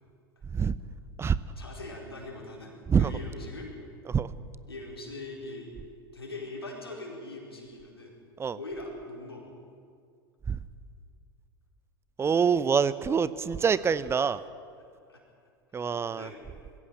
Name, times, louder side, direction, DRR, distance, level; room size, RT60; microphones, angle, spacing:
voice 1, 1.6-3.7 4.7-5.7 6.1-8.1 8.6-9.5 13.4-13.7 15.1-15.2 15.7-16.4, left 2 dB, 90° left, -1 dB, 4.6 m, -42 dB
voice 2, 12.2-14.4 15.7-16.3, right 6 dB, 20° right, 16 dB, 0.8 m, -25 dB
21.5 x 16.0 x 8.9 m, 2.2 s
figure-of-eight pair, 85°, 13 cm